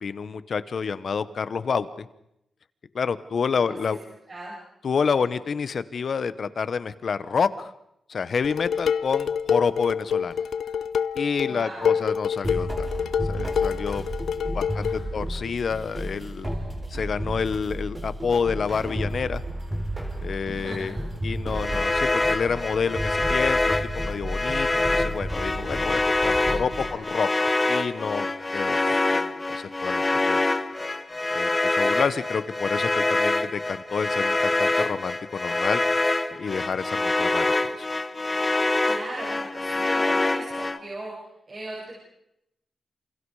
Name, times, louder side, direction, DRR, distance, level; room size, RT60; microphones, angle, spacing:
voice 1, 0.0-2.1 2.9-4.0 4.8-7.7 8.1-10.4 11.1-12.9 13.3-14.1 14.5-16.5 16.9-19.4 20.2-21.0 21.2-27.3 27.7-29.2 29.5-30.4 31.3-35.8 36.3-37.9, left 5 dB, 50° left, 14 dB, 1.2 m, -28 dB
Dishes pots and pans, 8.4-15.1, left 7 dB, 90° left, 0.9 m, -27 dB
voice 2, 11.4-12.0 14.6-15.0 16.4-16.7 20.4-21.1 21.5-21.9 26.4-27.2 28.8-29.3 38.8-42.0, right 1 dB, 35° right, -4 dB, 7.5 m, -40 dB
sound 1, 12.4-27.0, right 1 dB, 15° right, 4.3 m, -32 dB
sound 2, 21.5-40.8, left 2 dB, 20° left, 1.2 m, -25 dB
28.5 x 28.0 x 5.0 m, 0.80 s
wide cardioid pair, 140°, 0 cm